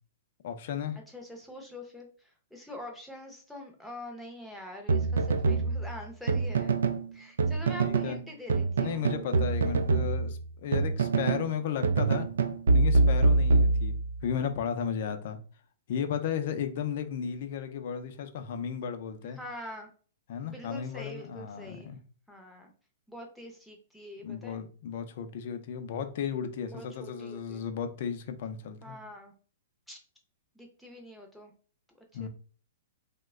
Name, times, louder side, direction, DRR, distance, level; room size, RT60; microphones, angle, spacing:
voice 1, 0.4-1.0 7.8-8.2 8.8-12.3 12.7-15.4 15.9-19.4 20.3-22.0 24.2-29.0 32.1-32.3, left 8 dB, 55° left, 0.5 m, -34 dB
voice 2, 1.1-2.1 2.5-6.7 7.1-9.1 19.4-19.9 20.4-21.9 22.3-22.7 23.1-24.6 26.6-27.6 28.8-29.3 29.9-30.0 30.6-31.5 32.2-32.3, left 1 dB, ahead, 0.6 m, -44 dB
sound 1, 4.9-7.0 7.4-8.2 8.5-11.5 11.8-14.3, right 3 dB, 90° right, 0.4 m, -25 dB
2.9 x 2.1 x 3.5 m
hypercardioid pair, 150°, 0 cm